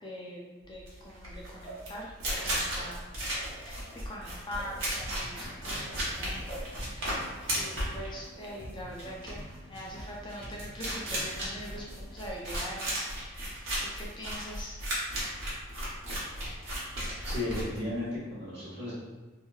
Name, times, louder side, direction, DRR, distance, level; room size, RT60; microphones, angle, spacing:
voice 1, 0.0-2.1 2.4-3.1 3.6-3.8 4.0-14.8, equal, 20° left, -3 dB, 0.4 m, -43 dB
sound 1, 0.8-18.2, right 1 dB, 70° right, 0.9 m, -35 dB
sound 2, 1.6-4.2 4.5-5.3 5.6-9.1, right 2 dB, 5° right, 0.9 m, -49 dB
sound 3, 5.0-12.2, equal, 45° left, 1.2 m, -49 dB
voice 2, 17.2-18.9, left 1 dB, 55° right, -9 dB, 1.3 m, -34 dB
2.8 x 2.7 x 2.3 m, 1.2 s
head